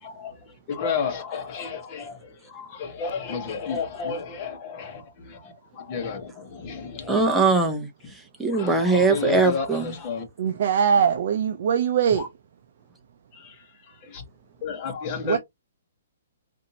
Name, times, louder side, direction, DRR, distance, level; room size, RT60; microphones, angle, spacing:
voice 1, 0.0-7.4 8.5-10.3 10.9-11.0 12.1-12.3 13.3-13.5 14.0-14.2 14.6-15.4, left 5 dB, 30° left, 1.1 m, -32 dB
voice 2, 7.1-9.9, right 4 dB, 5° right, 0.6 m, -22 dB
voice 3, 10.4-12.2 15.2-15.4, right 7 dB, 50° right, 0.5 m, -21 dB
4.1 x 2.6 x 2.7 m
hypercardioid pair, 165°, 0 cm